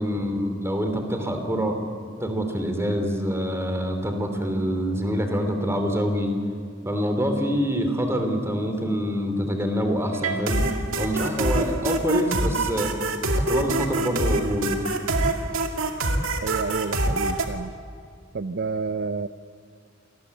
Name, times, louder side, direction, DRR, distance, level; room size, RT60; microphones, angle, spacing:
voice 1, 0.0-1.9 2.2-6.3 6.8-10.7 11.0-12.9 13.3-14.8, equal, 15° right, 5 dB, 3.1 m, -26 dB
sound 1, 10.1-17.5, right 2 dB, 80° right, 2.4 m, -25 dB
voice 2, 16.4-17.7 18.3-19.3, right 4 dB, 55° right, 12 dB, 0.5 m, -29 dB
27.5 x 20.0 x 8.4 m, 2.2 s
head